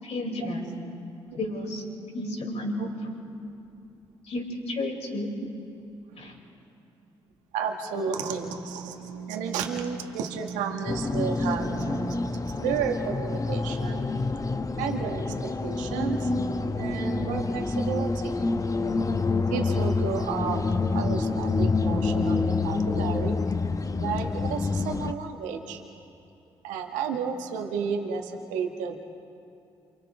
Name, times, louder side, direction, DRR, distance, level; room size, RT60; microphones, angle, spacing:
voice 1, 0.0-0.6 1.4-1.8 2.1-3.1 4.2-5.3 6.2-6.3, left 1 dB, 60° left, -2 dB, 5.7 m, -32 dB
voice 2, 7.5-14.1 14.8-16.3 16.8-18.3 19.5-23.4 24.0-25.8 26.6-29.0, right 6 dB, 75° right, 3 dB, 1.7 m, -32 dB
sound 1, 10.9-25.1, left 3 dB, 25° left, 0.9 m, -27 dB
28.5 x 26.5 x 3.5 m, 2.6 s
hypercardioid pair, 40°, 13 cm